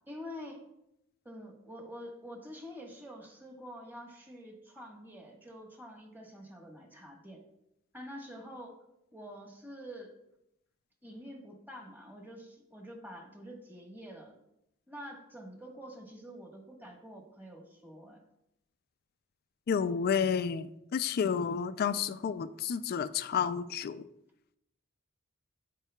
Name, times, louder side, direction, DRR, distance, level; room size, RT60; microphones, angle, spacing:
voice 1, 0.1-0.6 1.2-7.4 7.9-8.7 9.1-10.1 11.0-14.3 14.9-18.2, equal, 10° right, 0 dB, 1.2 m, -47 dB
voice 2, 19.7-24.0, left 7 dB, 50° left, 13 dB, 0.3 m, -31 dB
12.5 x 4.6 x 2.2 m, 0.82 s
head